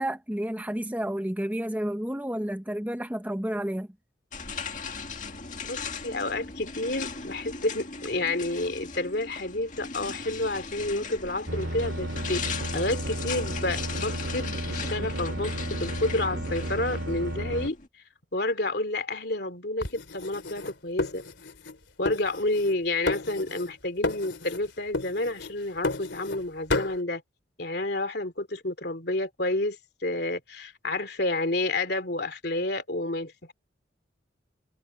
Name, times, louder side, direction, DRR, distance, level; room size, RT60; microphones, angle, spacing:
voice 1, 0.0-3.9 15.0-15.1, right 1 dB, 10° right, 0.9 m, -31 dB
sound 1, 4.3-17.9, left 5 dB, 40° left, 2.1 m, -38 dB
voice 2, 5.6-17.8 18.3-21.2 22.0-27.2 27.6-29.8 30.0-33.5, left 2 dB, 60° left, 2.9 m, -30 dB
sound 2, 11.5-17.7, right 1 dB, 80° right, 2.3 m, -33 dB
sound 3, 19.8-21.8 22.0-22.8 23.1-23.7 24.0-24.6 24.9-26.4 26.7-27.0, left 2 dB, 75° left, 2.9 m, -32 dB
head